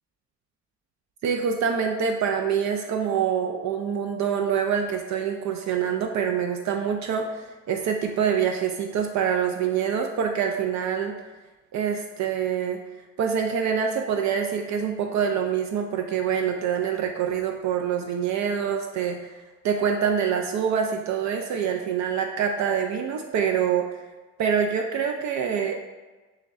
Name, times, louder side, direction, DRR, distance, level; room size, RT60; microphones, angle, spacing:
voice 1, 1.2-11.1 11.7-12.8 13.2-19.3 19.6-23.9 24.4-25.8, right 7 dB, 65° right, 3 dB, 0.5 m, -25 dB
3.4 x 3.2 x 3.5 m, 1.2 s
cardioid pair, 90°, 30 cm